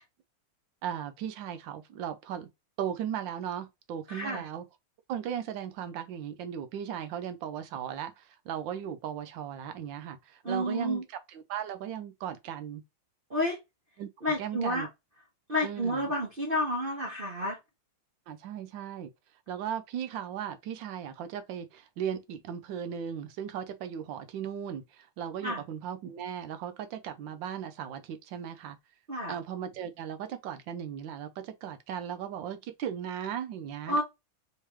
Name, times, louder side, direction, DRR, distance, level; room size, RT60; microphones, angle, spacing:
voice 1, 0.8-2.5 2.8-4.6 5.1-11.0 11.3-12.8 14.0-14.1 14.4-14.9 15.6-16.1 18.3-19.1 19.5-28.8 29.3-34.0, right 9 dB, 70° right, 1.2 m, -37 dB
voice 2, 4.1-4.4 10.4-11.0 13.3-13.6 14.2-14.9 15.5-17.6 25.4-25.6 29.1-29.3 33.9-34.0, equal, 40° right, 0.8 m, -30 dB
3.6 x 3.3 x 2.9 m
omnidirectional pair, 2.4 m